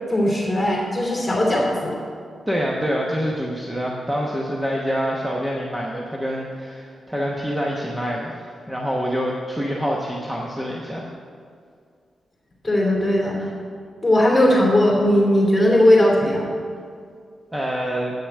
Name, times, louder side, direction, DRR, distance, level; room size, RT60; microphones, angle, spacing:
voice 1, 0.1-1.9 12.6-13.5 14.0-16.4, left 1 dB, 15° left, -3 dB, 2.8 m, -18 dB
voice 2, 2.5-11.1 17.5-18.1, equal, 10° right, -3 dB, 1.0 m, -26 dB
8.8 x 6.9 x 8.2 m, 2.2 s
wide cardioid pair, 115°, 0 cm